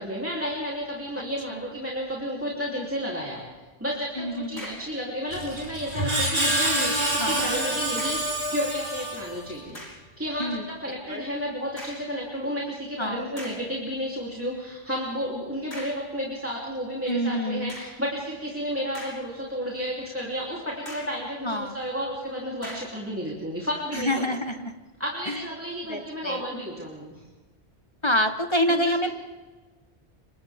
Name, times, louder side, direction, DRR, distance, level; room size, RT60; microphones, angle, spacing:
voice 1, 0.0-3.4 3.8-9.8 10.2-24.3 25.0-27.2 28.7-29.1, equal, 10° right, -4 dB, 3.5 m, -32 dB
voice 2, 4.2-4.8 7.2-7.4 10.4-10.7 11.1-11.2 13.0-13.3 17.1-17.7 21.4-21.8 23.9-24.7 25.3-25.4 25.9-26.4 28.0-29.1, equal, 25° left, 6 dB, 1.4 m, -27 dB
sound 1, 4.3-5.0 6.4-6.7 7.9-8.3 8.9-9.0 9.7-10.1 11.8-12.1 12.8-12.9 13.4-13.7 15.7-16.1 17.7-18.1 18.7-19.5 19.9-20.0 20.8-21.2 22.6-23.0, left 1 dB, 75° left, 6.6 m, -42 dB
Screech, 5.3-9.6, right 1 dB, 50° right, 4.7 m, -27 dB
30.0 x 25.5 x 3.7 m, 1.3 s
omnidirectional pair, 1.1 m